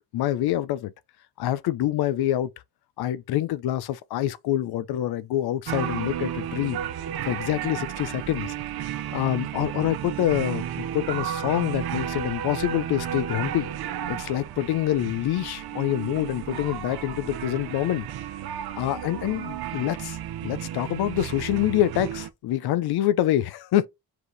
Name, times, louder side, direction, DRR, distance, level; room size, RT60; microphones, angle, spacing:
voice 1, 0.1-0.9 1.4-2.5 3.0-6.8 7.2-8.5 9.1-13.7 14.1-18.1 18.7-20.2 20.4-23.9, left 13 dB, 85° left, 0.7 m, -26 dB
sound 1, 5.7-22.3, right 10 dB, 75° right, 0.9 m, -33 dB
4.9 x 4.8 x 4.0 m
cardioid pair, 165°, 37 cm